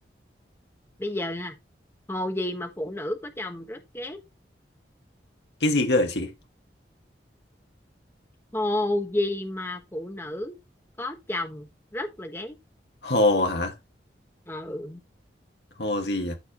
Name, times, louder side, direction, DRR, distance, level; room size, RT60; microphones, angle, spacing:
voice 1, 1.0-1.5 2.1-4.2 8.5-10.6 11.0-12.6 14.5-15.0, left 1 dB, 15° left, 1.4 m, -31 dB
voice 2, 5.6-6.3 13.0-13.8 15.8-16.4, left 2 dB, 70° left, 1.8 m, -23 dB
13.5 x 4.8 x 3.0 m
head